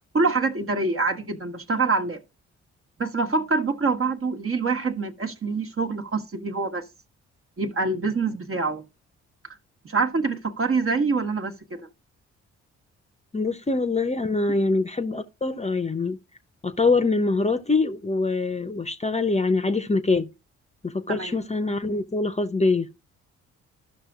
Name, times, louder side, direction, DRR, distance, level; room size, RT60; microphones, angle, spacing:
voice 1, 0.1-2.2 3.0-6.8 7.6-8.8 9.8-11.8 21.1-21.3, right 4 dB, 40° right, 1.4 m, -25 dB
voice 2, 13.3-16.2 16.6-20.3 20.8-22.9, left 3 dB, 20° left, 0.9 m, -24 dB
13.5 x 6.0 x 2.4 m
hypercardioid pair, 45°, 35 cm